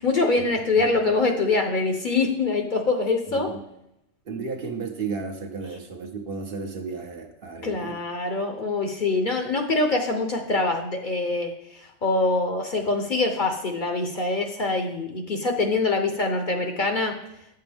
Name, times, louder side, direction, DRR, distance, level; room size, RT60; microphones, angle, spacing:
voice 1, 0.0-3.5 7.6-17.1, left 3 dB, 45° left, 4 dB, 0.8 m, -24 dB
voice 2, 3.3-3.6 4.2-8.0, right 4 dB, 55° right, 4 dB, 1.0 m, -33 dB
8.8 x 6.8 x 3.4 m, 0.82 s
omnidirectional pair, 1.2 m